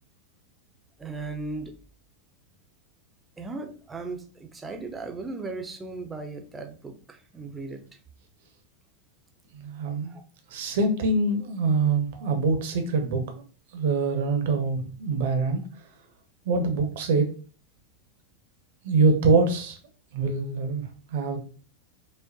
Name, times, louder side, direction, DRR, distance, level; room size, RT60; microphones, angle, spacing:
voice 1, 1.0-1.7 3.4-7.8 10.1-10.2 12.1-12.3, right 3 dB, 15° right, 4 dB, 0.6 m, -37 dB
voice 2, 9.5-10.1 10.5-13.4 13.7-15.6 16.4-17.3 18.8-19.8 20.1-20.8 21.1-21.4, right 3 dB, 55° right, 5 dB, 0.7 m, -24 dB
5.0 x 2.1 x 2.6 m, 0.40 s
figure-of-eight pair, 90°, 0 cm